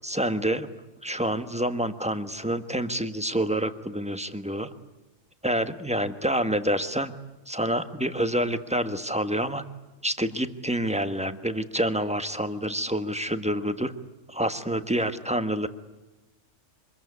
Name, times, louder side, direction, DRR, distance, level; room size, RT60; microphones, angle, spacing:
voice 1, 0.0-0.7 1.0-4.7 5.4-7.1 7.5-9.6 10.0-13.9 14.3-15.7, right 1 dB, 5° right, 9 dB, 1.2 m, -27 dB
25.5 x 21.5 x 9.7 m, 1.1 s
omnidirectional pair, 1.4 m